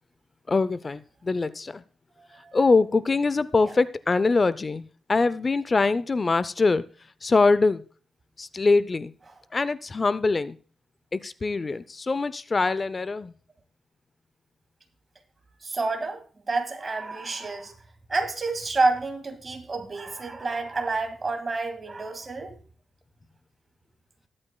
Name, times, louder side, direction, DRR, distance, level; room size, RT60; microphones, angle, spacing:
voice 1, 0.5-1.8 2.5-6.9 7.2-7.8 8.4-9.1 9.5-10.6 11.1-13.3, left 3 dB, 30° left, 16 dB, 0.5 m, -23 dB
voice 2, 2.2-2.6 15.6-17.7 18.1-22.5, right 3 dB, 35° right, 5 dB, 2.0 m, -29 dB
20.0 x 8.6 x 2.3 m, 0.41 s
cardioid pair, 105°, 0 cm